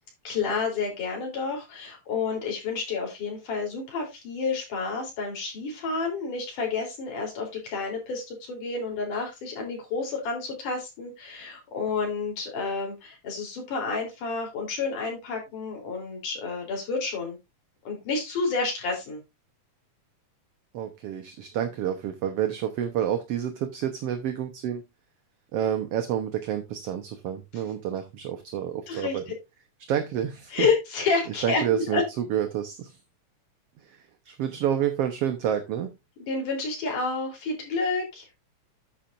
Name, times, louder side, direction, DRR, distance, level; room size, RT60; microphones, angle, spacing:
voice 1, 0.3-17.4 17.9-19.2 28.9-29.2 30.5-32.0 36.2-38.3, left 4 dB, 85° left, 5.1 m, -30 dB
voice 2, 20.7-24.8 25.5-29.2 29.9-30.7 31.4-33.0 33.8-34.0 34.3-35.9, right 9 dB, 65° right, 1.8 m, -29 dB
10.5 x 9.1 x 2.6 m
omnidirectional pair, 3.5 m